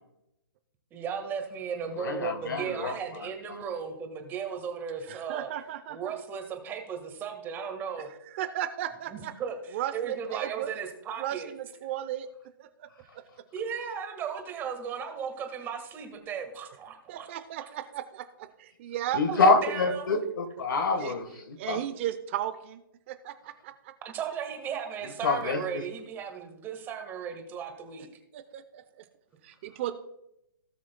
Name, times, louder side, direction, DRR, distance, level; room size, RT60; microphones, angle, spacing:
voice 1, 0.9-5.5 5.9-8.1 9.1-11.5 13.5-17.3 19.3-20.1 24.0-28.1, right 7 dB, 15° right, 1.5 m, -36 dB
voice 2, 2.0-3.0 3.5-3.6 19.1-21.8 25.2-25.9, left 3 dB, 65° left, 1.3 m, -26 dB
voice 3, 5.1-6.0 8.3-9.3 9.7-10.7 11.2-12.3 12.6-12.9 17.1-19.2 21.0-21.1 21.6-23.9 28.3-28.8 29.4-29.9, right 12 dB, 30° right, 0.6 m, -35 dB
17.5 x 6.2 x 2.2 m
hypercardioid pair, 145°, 12 cm